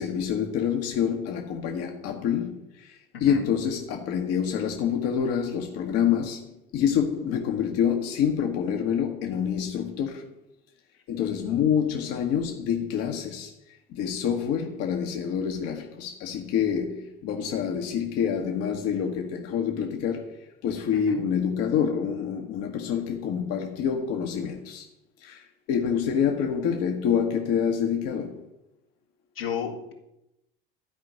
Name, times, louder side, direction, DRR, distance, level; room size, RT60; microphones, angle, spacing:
voice 1, 0.0-10.3 11.1-13.5 13.9-24.8 25.2-28.4, left 8 dB, 55° left, 1.4 m, -27 dB
voice 2, 3.1-3.5 20.9-21.2 29.3-29.9, left 7 dB, 85° left, 2.2 m, -33 dB
13.0 x 5.1 x 8.7 m
figure-of-eight pair, 65°, 29 cm